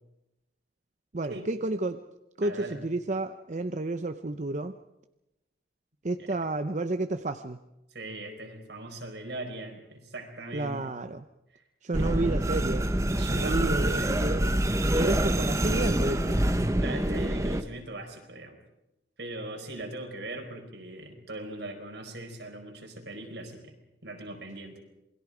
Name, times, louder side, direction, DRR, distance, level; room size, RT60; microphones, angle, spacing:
voice 1, 1.1-2.0 2.4-4.7 6.0-7.6 10.5-11.2 11.8-12.9 13.3-14.4 15.0-16.4, right 2 dB, 45° right, 8 dB, 0.7 m, -31 dB
voice 2, 2.4-2.8 6.2-6.3 7.9-10.9 11.5-11.6 12.0-12.1 13.2-14.1 14.9-15.3 16.8-18.5 19.2-23.7 24.0-24.8, right 1 dB, 75° right, 3 dB, 4.6 m, -40 dB
sound 1, 11.9-17.6, right 1 dB, 15° right, 0.9 m, -26 dB
27.5 x 21.5 x 5.0 m, 0.93 s
head